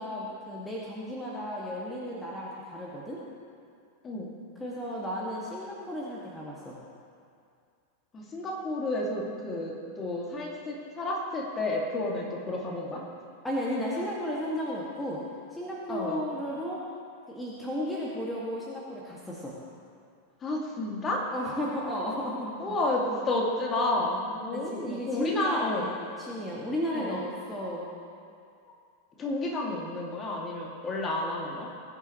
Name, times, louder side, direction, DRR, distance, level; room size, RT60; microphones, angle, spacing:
voice 1, 0.0-3.2 4.6-6.8 13.4-15.2 15.5-16.8 17.3-19.5 21.3-22.7 24.4-27.9, equal, 10° left, -6 dB, 2.0 m, -34 dB
voice 2, 8.1-13.0 15.9-16.2 20.4-21.2 22.6-25.9 26.9-27.2 29.2-31.7, left 2 dB, 25° left, -2 dB, 2.3 m, -31 dB
20.0 x 9.9 x 3.1 m, 2.3 s
figure-of-eight pair, 90°, 0 cm